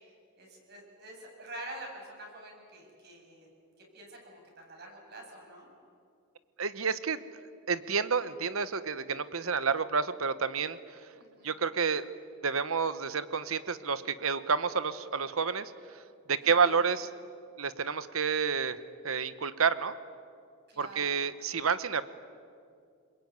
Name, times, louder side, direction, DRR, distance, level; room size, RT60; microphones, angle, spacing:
voice 1, 0.4-3.5 3.9-5.7 11.2-11.5 16.4-16.8 20.7-21.2, right 1 dB, 50° right, 0 dB, 7.5 m, -47 dB
voice 2, 6.6-7.2 7.7-10.8 11.4-12.0 12.4-16.0 16.3-17.1 17.6-18.8 19.0-19.9 20.8-22.0, right 5 dB, 80° right, 13 dB, 1.1 m, -29 dB
29.0 x 21.0 x 9.5 m, 2.3 s
head